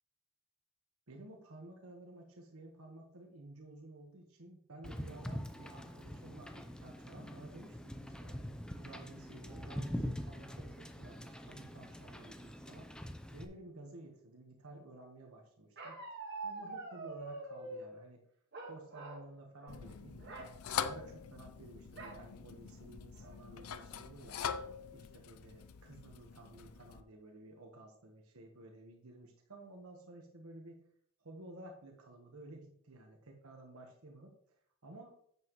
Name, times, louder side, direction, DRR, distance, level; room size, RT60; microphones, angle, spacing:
voice 1, 1.1-12.9 13.3-16.0 16.4-18.2 18.7-20.4 20.8-24.4 24.9-30.9 31.2-35.2, right 2 dB, 75° right, 1 dB, 1.3 m, -53 dB
Wind / Boat Water vehicle, 4.8-13.4, equal, 5° left, 0.5 m, -44 dB
Bark, 15.8-17.9 18.5-19.3 19.6-19.8 20.2-20.5 22.0-22.2 22.8-22.9 23.2-23.6, right 3 dB, 50° right, 1.6 m, -45 dB
sound 1, 19.7-27.0, left 7 dB, 80° left, 0.5 m, -43 dB
9.6 x 7.5 x 3.1 m, 0.67 s
head